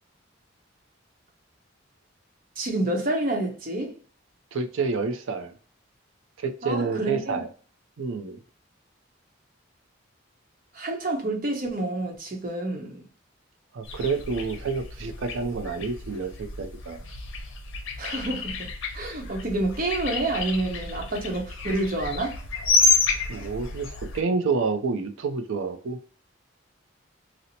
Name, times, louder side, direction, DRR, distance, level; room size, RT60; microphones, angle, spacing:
voice 1, 2.6-4.0 6.6-7.4 10.7-13.0 18.0-18.7 18.9-22.4, right 2 dB, 45° right, 0.8 m, -28 dB
voice 2, 4.5-5.5 6.4-7.5 8.0-8.4 13.7-17.0 23.3-26.0, right 4 dB, 75° right, 0.4 m, -28 dB
sound 1, 13.8-24.2, left 3 dB, 80° left, 0.7 m, -29 dB
2.8 x 2.0 x 4.0 m
head